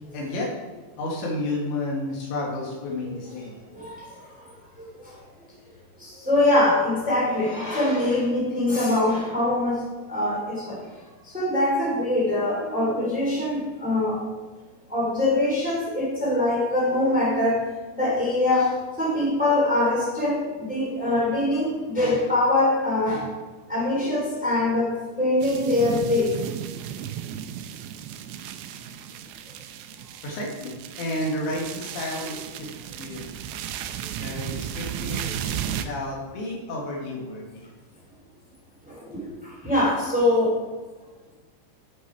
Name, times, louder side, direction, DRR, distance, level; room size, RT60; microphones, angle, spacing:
voice 1, 0.1-0.5 1.0-3.6 30.2-32.7 33.0-33.3 34.2-35.3 35.7-37.7, left 1 dB, 90° left, -2 dB, 4.3 m, -31 dB
voice 2, 3.7-4.3 4.8-5.2 6.0-9.8 10.1-10.8 11.2-14.3 14.9-17.7 17.9-23.2 23.7-26.4 35.4-35.6 38.9-40.6, left 2 dB, ahead, -5 dB, 2.9 m, -23 dB
sound 1, 25.4-35.9, right 10 dB, 85° right, 2.8 m, -34 dB
9.8 x 8.2 x 4.8 m, 1.3 s
omnidirectional pair, 4.9 m